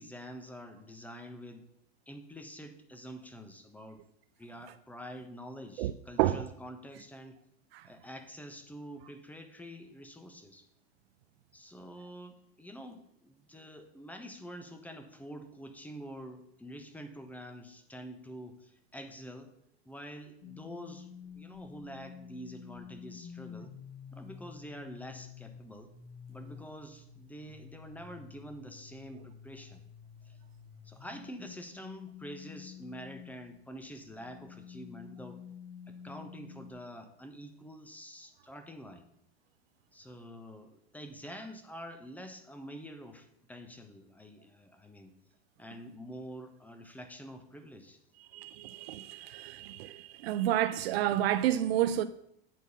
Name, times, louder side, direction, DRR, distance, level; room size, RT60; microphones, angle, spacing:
voice 1, 0.0-1.7 2.1-4.0 4.4-7.4 7.8-10.6 11.5-19.5 19.8-21.1 21.3-23.7 24.1-25.9 26.3-29.8 30.3-30.4 30.8-35.4 35.9-39.1 39.9-45.1 45.6-48.0, equal, 5° left, 1.1 m, -47 dB
sound 1, 20.4-33.5 34.0-36.7, left 7 dB, 40° left, 1.5 m, -50 dB
voice 2, 48.3-52.0, right 12 dB, 70° right, 0.6 m, -30 dB
9.2 x 4.0 x 7.0 m
hypercardioid pair, 110°, 32 cm